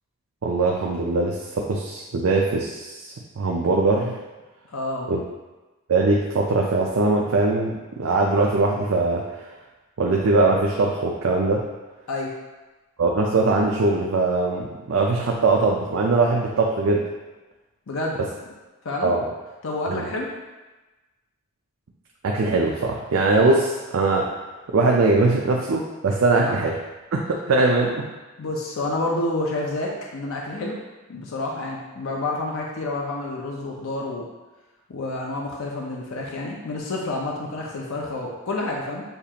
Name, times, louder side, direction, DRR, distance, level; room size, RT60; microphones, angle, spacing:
voice 1, 0.4-4.1 5.1-5.2 5.9-9.5 10.0-11.6 13.0-17.0 19.0-19.2 19.9-20.0 22.2-24.3 24.7-26.8 27.1-27.2 27.5-28.1, right 3 dB, 70° right, -1 dB, 0.5 m, -21 dB
voice 2, 4.7-5.1 12.1-12.3 17.9-18.2 18.8-19.1 19.6-20.3 26.4-26.6 28.4-30.8 31.1-34.3 34.9-39.0, left 2 dB, 70° left, -1 dB, 0.6 m, -29 dB
6.6 x 2.4 x 2.8 m, 1.2 s
head